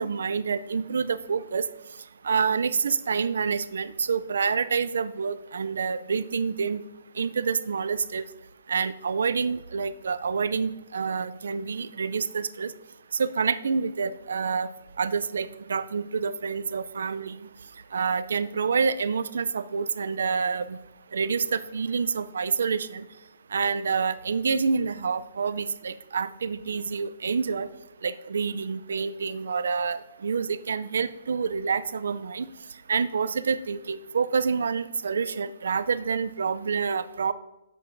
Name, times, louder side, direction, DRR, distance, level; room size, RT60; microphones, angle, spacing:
voice 1, 0.0-1.7 2.2-6.8 7.2-8.2 8.7-12.7 13.1-14.7 15.0-17.5 17.9-20.8 21.1-23.0 23.5-27.7 28.0-32.5 32.9-37.3, right 5 dB, 80° right, 14 dB, 0.4 m, -27 dB
10.0 x 7.6 x 2.6 m, 0.95 s
hypercardioid pair, 165°, 0 cm